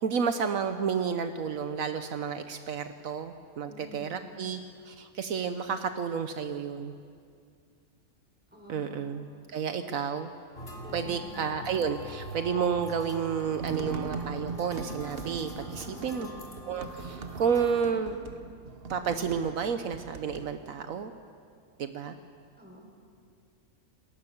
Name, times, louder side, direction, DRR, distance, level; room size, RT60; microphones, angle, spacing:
voice 1, 0.0-7.0 8.7-10.3 10.9-16.3 16.7-18.2 18.9-21.1 21.8-22.1, right 6 dB, 75° right, 8 dB, 1.3 m, -31 dB
voice 2, 3.7-4.3 8.5-9.2 10.8-11.3 15.8-16.5 22.6-22.8, equal, 5° right, 0 dB, 5.1 m, -49 dB
sound 1, 10.5-17.8, equal, 50° left, 3.1 m, -44 dB
sound 2, 13.6-20.5, right 4 dB, 45° right, 1.1 m, -40 dB
28.5 x 19.0 x 7.2 m, 2.3 s
omnidirectional pair, 1.4 m